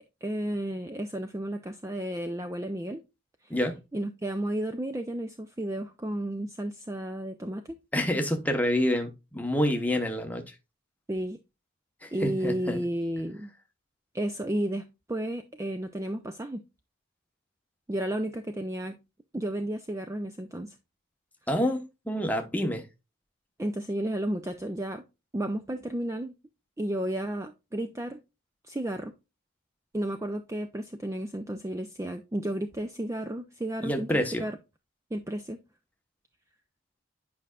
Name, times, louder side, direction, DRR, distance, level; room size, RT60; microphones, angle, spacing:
voice 1, 0.0-3.0 3.4-3.5 3.9-7.8 11.1-11.4 12.1-13.5 14.1-16.6 17.9-19.0 19.3-20.8 23.6-25.0 25.3-26.3 26.8-28.2 28.6-29.1 29.9-34.6 35.1-35.6, right 1 dB, 15° right, 0.4 m, -32 dB
voice 2, 7.9-10.5 12.0-12.8 21.5-22.9 33.8-34.5, left 1 dB, 5° left, 0.9 m, -28 dB
8.7 x 5.5 x 2.3 m
head